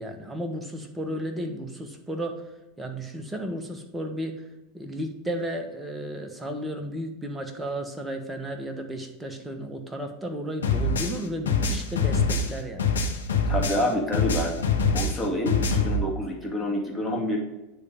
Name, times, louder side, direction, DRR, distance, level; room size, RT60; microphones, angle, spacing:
voice 1, 0.0-2.5 2.8-4.5 4.7-12.9, right 1 dB, 10° right, 4 dB, 1.3 m, -33 dB
sound 1, 10.6-13.9 14.1-16.0, left 4 dB, 85° left, 1.0 m, -24 dB
voice 2, 13.5-17.4, left 1 dB, 5° left, -2 dB, 2.2 m, -28 dB
9.3 x 3.4 x 5.2 m, 1.0 s
hypercardioid pair, 90°, 0 cm